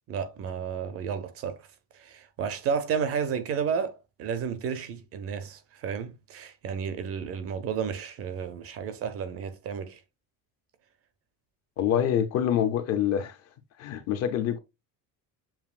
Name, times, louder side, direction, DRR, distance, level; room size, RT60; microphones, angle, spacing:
voice 1, 0.0-1.7 1.9-10.0, right 7 dB, 35° right, 0.5 m, -32 dB
voice 2, 11.8-13.4 13.8-14.6, left 9 dB, 40° left, 0.5 m, -26 dB
7.1 x 2.7 x 2.4 m
cardioid pair, 170°, 40 cm